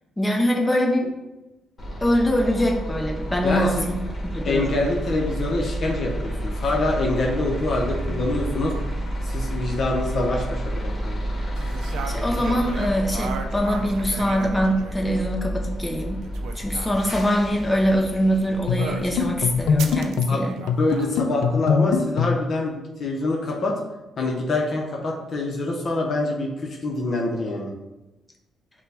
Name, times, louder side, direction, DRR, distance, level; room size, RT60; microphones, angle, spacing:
voice 1, 0.2-1.1 2.0-4.0 4.3-4.7 12.1-16.2 16.6-20.6, equal, 10° left, 1 dB, 0.6 m, -23 dB
sound 1, 1.8-19.9, right 1 dB, 35° left, 1.2 m, -30 dB
voice 2, 3.4-3.9 4.4-8.7 9.2-11.2 20.3-20.4 20.8-23.8 24.2-27.7, left 2 dB, 55° left, -1 dB, 0.7 m, -25 dB
sound 2, 11.6-15.1 16.1-16.9 18.8-19.2 19.8-21.2, right 5 dB, 80° right, 0.4 m, -36 dB
sound 3, 18.7-22.5, left 5 dB, 85° left, 0.3 m, -23 dB
5.5 x 2.2 x 3.4 m, 1.0 s
cardioid pair, 90°, 0 cm